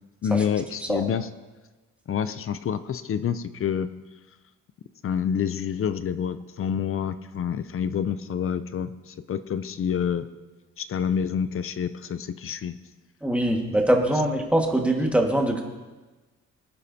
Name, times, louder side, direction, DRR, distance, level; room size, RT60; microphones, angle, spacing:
voice 1, 0.2-1.3 2.1-3.9 5.0-10.3 10.8-12.8, left 8 dB, 45° left, 13 dB, 0.6 m, -28 dB
voice 2, 13.2-15.6, right 1 dB, 5° right, 1 dB, 1.7 m, -22 dB
19.0 x 9.8 x 2.8 m, 1.2 s
cardioid pair, 90°, 30 cm